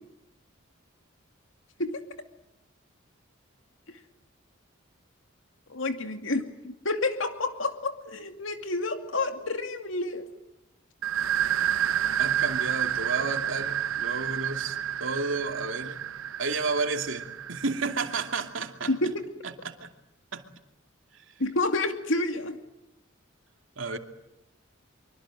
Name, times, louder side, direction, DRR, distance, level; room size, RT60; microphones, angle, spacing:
voice 1, 5.7-10.3 18.9-19.1 21.4-22.6, left 2 dB, 75° left, 2.5 m, -29 dB
sound 1, 11.0-18.5, right 10 dB, 90° right, 1.1 m, -30 dB
voice 2, 12.2-16.0 16.4-18.9 19.6-19.9 20.3-20.4 21.1-21.2 23.8-24.0, right 3 dB, 70° right, 2.7 m, -32 dB
25.0 x 24.5 x 9.1 m
head